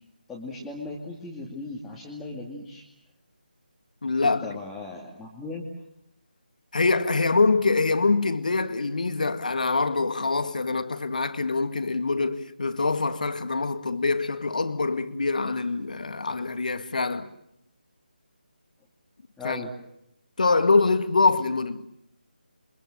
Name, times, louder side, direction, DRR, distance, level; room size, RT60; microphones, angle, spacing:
voice 1, 0.3-2.8 4.2-5.7 19.4-19.7, left 3 dB, 5° left, 2.5 m, -37 dB
voice 2, 4.0-4.5 6.7-17.3 19.4-19.6 20.4-21.9, left 3 dB, 50° left, 2.1 m, -24 dB
29.0 x 24.5 x 7.6 m
figure-of-eight pair, 155°, 5 cm